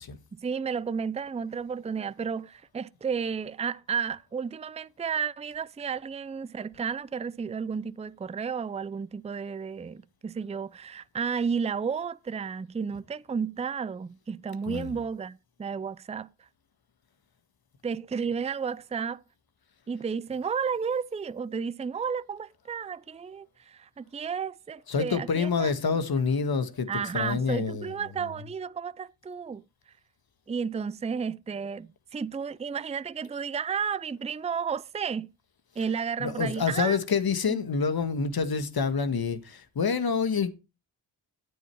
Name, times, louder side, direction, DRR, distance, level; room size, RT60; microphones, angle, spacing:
voice 1, 0.3-16.3 17.8-19.2 19.9-25.7 26.9-29.6 30.5-35.3 35.8-37.0 37.5-37.6, right 6 dB, 15° right, 0.5 m, -32 dB
voice 2, 14.7-15.0 24.9-27.9 28.2-28.3 36.2-40.5, left 5 dB, 50° left, 1.7 m, -27 dB
9.5 x 9.0 x 4.6 m
cardioid pair, 55°, 46 cm